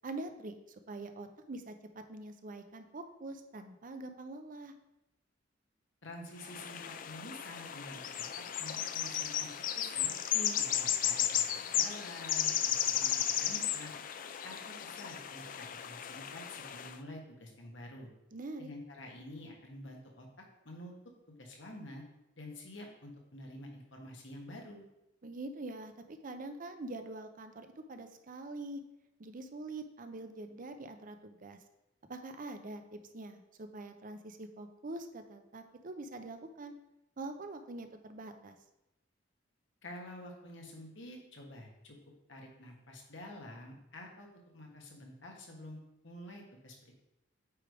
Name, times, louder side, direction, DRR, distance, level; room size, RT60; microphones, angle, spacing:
voice 1, 0.0-0.6 0.9-4.7 10.3-10.6 18.3-18.7 25.2-28.8 29.2-31.6 32.1-36.7 37.2-38.6, right 2 dB, 45° right, 8 dB, 0.6 m, -44 dB
voice 2, 6.0-9.5 9.7-10.1 10.5-13.9 14.4-18.1 18.6-20.3 20.6-20.9 21.3-22.0 22.4-24.9 39.8-41.9 42.3-44.3 44.5-45.8 46.0-46.9, left 1 dB, 70° left, 1 dB, 1.5 m, -49 dB
sound 1, 6.4-17.0, left 10 dB, 45° left, 0.4 m, -34 dB
8.5 x 3.4 x 4.8 m, 0.89 s
head